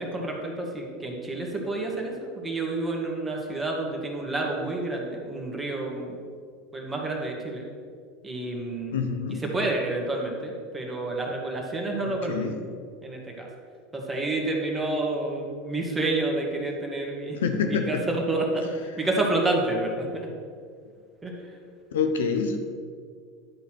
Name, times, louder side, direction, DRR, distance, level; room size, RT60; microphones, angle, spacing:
voice 1, 0.0-6.1 6.7-7.6 8.2-9.0 9.4-12.5 13.0-13.5 13.9-17.4 17.7-18.7 19.0-20.3 21.2-21.3, right 2 dB, 15° right, 0 dB, 2.0 m, -29 dB
voice 2, 8.9-9.4 12.3-12.6 17.4-18.0 21.9-22.6, left 5 dB, 80° left, 5 dB, 0.9 m, -26 dB
11.0 x 4.1 x 6.2 m, 2.1 s
hypercardioid pair, 90°, 0 cm